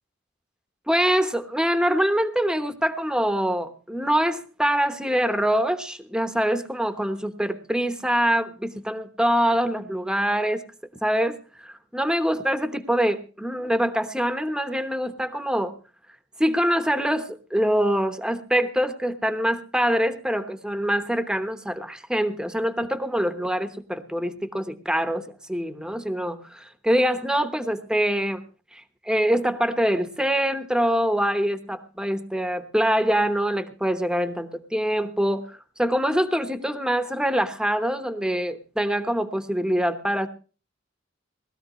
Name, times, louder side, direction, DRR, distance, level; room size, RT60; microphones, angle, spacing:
voice 1, 0.9-10.6 11.0-15.7 16.4-28.4 28.7-40.3, equal, 5° right, 9 dB, 1.1 m, -24 dB
19.5 x 13.5 x 3.1 m, 0.35 s
head